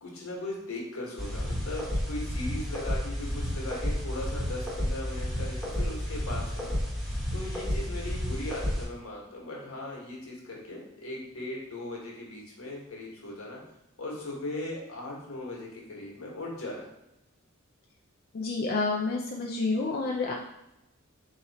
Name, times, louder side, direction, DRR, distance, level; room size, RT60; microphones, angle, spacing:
voice 1, 0.0-6.8 7.3-13.6 14.0-16.8, left 1 dB, 80° left, -3 dB, 1.3 m, -38 dB
sound 1, 1.2-8.9, equal, ahead, 1.0 m, -31 dB
voice 2, 18.3-20.3, left 3 dB, 45° left, -1 dB, 0.4 m, -29 dB
3.7 x 3.0 x 4.1 m, 0.89 s
head